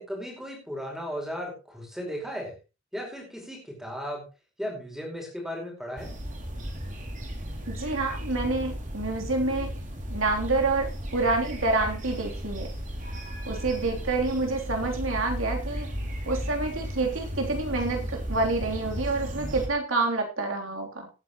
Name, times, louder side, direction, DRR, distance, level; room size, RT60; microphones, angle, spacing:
voice 1, 0.0-2.5 2.9-4.2 4.6-6.1, equal, ahead, 0 dB, 4.7 m, -36 dB
sound 1, 6.0-19.7, equal, 40° right, 2.8 m, -35 dB
voice 2, 7.7-9.8 10.1-12.7 13.4-15.9 16.2-21.1, right 3 dB, 85° right, 2 dB, 3.4 m, -28 dB
18.0 x 9.4 x 3.1 m, 0.30 s
head